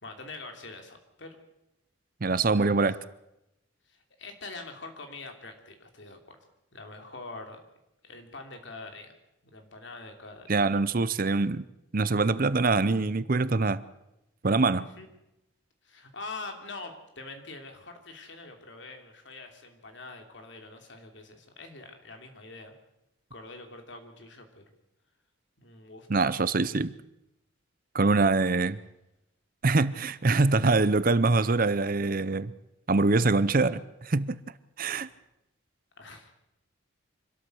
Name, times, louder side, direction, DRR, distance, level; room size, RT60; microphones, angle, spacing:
voice 1, 0.0-1.4 2.5-2.7 3.9-6.4 6.7-7.6 8.0-9.1 9.5-10.5 14.7-15.1 15.8-22.7 23.3-24.7 25.6-26.3 36.0-36.3, left 3 dB, 60° left, 5 dB, 3.0 m, -44 dB
voice 2, 2.2-3.0 10.5-11.6 11.9-13.8 14.4-14.9 26.1-26.9 27.9-28.8 29.6-32.5 32.9-34.4 34.8-35.1, right 3 dB, 45° right, 16 dB, 0.6 m, -24 dB
25.5 x 13.0 x 7.9 m, 0.88 s
head